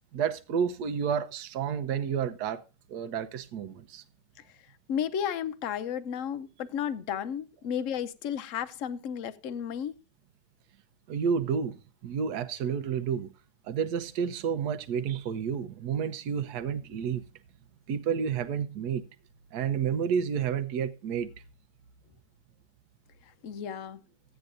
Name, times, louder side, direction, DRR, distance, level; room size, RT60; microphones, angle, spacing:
voice 1, 0.1-2.6 2.9-4.0 11.1-13.3 13.7-17.2 17.9-19.0 19.5-21.3, right 7 dB, 70° right, 1.3 m, -30 dB
voice 2, 4.9-9.9 23.4-24.0, left 8 dB, 60° left, 0.9 m, -33 dB
15.5 x 9.3 x 2.6 m
omnidirectional pair, 1.9 m